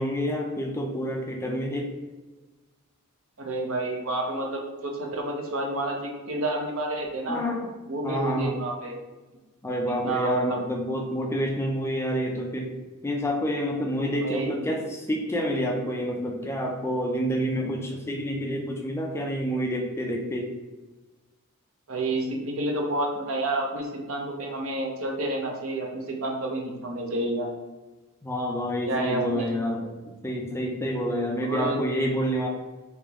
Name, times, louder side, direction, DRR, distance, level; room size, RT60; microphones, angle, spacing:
voice 1, 0.0-1.9 7.3-7.7 8.0-8.6 9.6-12.7 13.0-20.5 28.2-29.9 30.2-32.5, equal, 10° left, 1 dB, 0.4 m, -28 dB
voice 2, 3.4-7.4 7.9-9.0 10.0-10.6 14.2-14.6 21.9-27.5 28.9-29.5 31.4-31.8, right 2 dB, 65° right, 1 dB, 0.7 m, -29 dB
3.4 x 2.9 x 3.4 m, 1.2 s
head